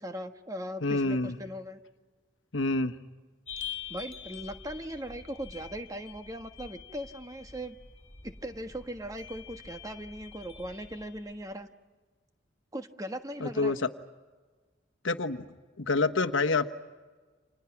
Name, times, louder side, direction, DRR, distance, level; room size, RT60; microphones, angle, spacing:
voice 1, 0.0-1.8 3.9-7.8 8.2-11.7 12.7-13.8, equal, 20° right, 7 dB, 1.4 m, -39 dB
voice 2, 0.8-1.3 2.5-3.0 13.4-13.9 15.0-15.4 15.8-16.6, left 3 dB, 85° left, 8 dB, 1.2 m, -27 dB
sound 1, 3.5-11.5, left 8 dB, 30° left, 3.3 m, -45 dB
30.0 x 27.0 x 6.0 m, 1.3 s
head